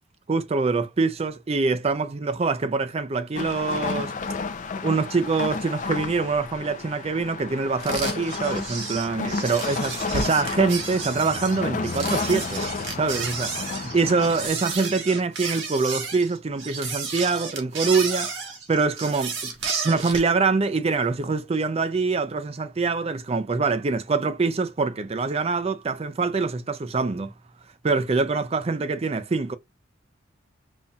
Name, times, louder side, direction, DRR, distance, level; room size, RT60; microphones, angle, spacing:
voice 1, 0.3-4.1 4.8-12.7 13.0-18.4 18.7-27.3 27.8-29.5, right 4 dB, 30° right, 0.4 m, -24 dB
sound 1, 3.3-14.5, left 4 dB, 40° left, 0.5 m, -31 dB
sound 2, 7.8-20.3, right 5 dB, 75° right, 1.4 m, -32 dB
5.5 x 2.6 x 2.3 m
head